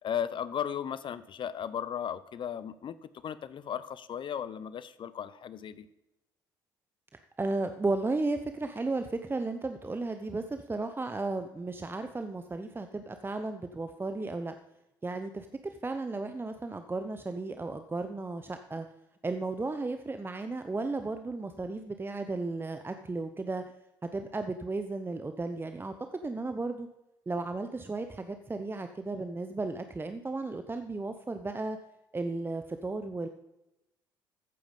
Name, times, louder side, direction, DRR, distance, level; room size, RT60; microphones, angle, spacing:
voice 1, 0.0-5.9, left 8 dB, 45° left, 15 dB, 0.8 m, -36 dB
voice 2, 7.4-14.5 15.0-18.9 19.2-23.6 24.1-26.9 27.3-31.8 32.1-33.3, right 3 dB, 20° right, 8 dB, 0.9 m, -34 dB
14.5 x 9.2 x 5.3 m, 0.92 s
hypercardioid pair, 55°, 11 cm